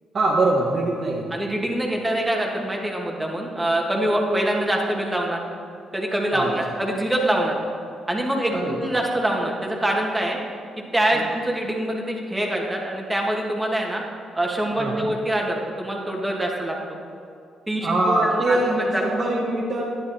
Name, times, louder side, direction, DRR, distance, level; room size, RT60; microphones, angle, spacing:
voice 1, 0.1-1.2 6.3-6.5 8.5-8.8 11.1-11.3 14.8-15.1 17.8-18.7 19.0-19.8, right 2 dB, 45° right, -3 dB, 1.5 m, -23 dB
voice 2, 1.3-5.4 5.9-7.6 8.1-10.4 10.9-14.0 14.3-16.8 17.7-19.0, right 1 dB, 10° right, 0 dB, 2.0 m, -24 dB
11.0 x 10.5 x 4.3 m, 2.4 s
cardioid pair, 90°, 0 cm